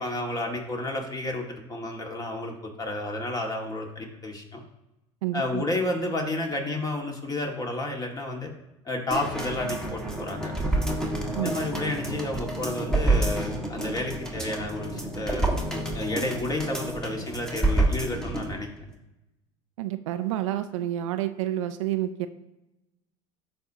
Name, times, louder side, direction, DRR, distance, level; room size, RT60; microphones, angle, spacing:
voice 1, 0.0-4.6 5.3-8.5 8.9-10.5 11.4-15.5 15.9-18.7, left 2 dB, 25° left, 2 dB, 1.8 m, -31 dB
voice 2, 5.2-5.7 11.3-11.6 19.8-22.3, right 13 dB, 80° right, 10 dB, 0.5 m, -29 dB
sound 1, 9.1-18.5 18.9-19.0, right 2 dB, 5° left, 1.5 m, -28 dB
12.5 x 4.3 x 2.7 m, 0.95 s
hypercardioid pair, 85°, 16 cm